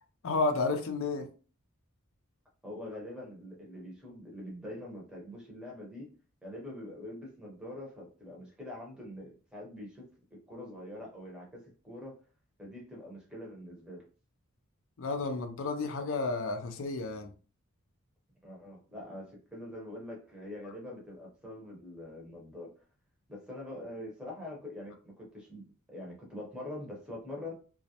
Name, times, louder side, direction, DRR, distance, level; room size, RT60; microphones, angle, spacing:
voice 1, 0.2-1.3 15.0-17.3, left 3 dB, 65° left, 5 dB, 0.5 m, -31 dB
voice 2, 2.6-6.1 6.4-10.0 10.5-12.2 12.6-14.0 18.4-22.7 23.3-25.6 25.9-27.5, left 1 dB, 5° right, -3 dB, 0.8 m, -44 dB
2.4 x 2.0 x 2.7 m, 0.37 s
head